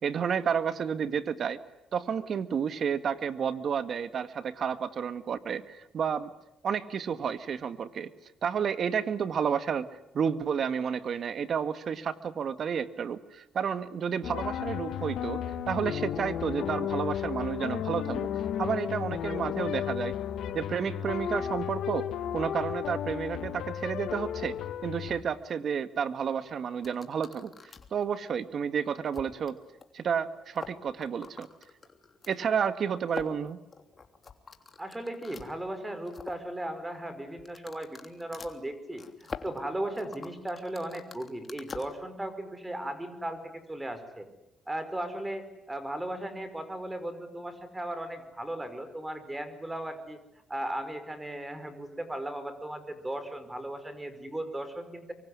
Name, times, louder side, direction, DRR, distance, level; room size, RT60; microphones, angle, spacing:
voice 1, 0.0-1.6 1.9-6.3 6.6-8.1 8.4-9.9 10.1-18.3 18.6-20.2 20.5-22.1 22.3-24.5 24.8-27.5 27.9-29.6 29.9-31.5 32.3-33.6, right 7 dB, 55° right, 11 dB, 1.9 m, -31 dB
sound 1, 14.2-25.2, left 10 dB, 75° left, 2.2 m, -33 dB
sound 2, 26.8-28.0 28.5-28.6 29.1-29.5 29.8-29.9 30.1-30.2 30.5-32.3 33.1-35.5 35.9-36.5 37.4-41.9, left 4 dB, 35° left, 3.2 m, -44 dB
voice 2, 34.8-39.0 39.4-44.3 44.7-50.2 50.5-55.1, right 1 dB, 15° right, 11 dB, 5.1 m, -36 dB
24.5 x 24.5 x 9.8 m, 0.86 s
cardioid pair, 90°, 0 cm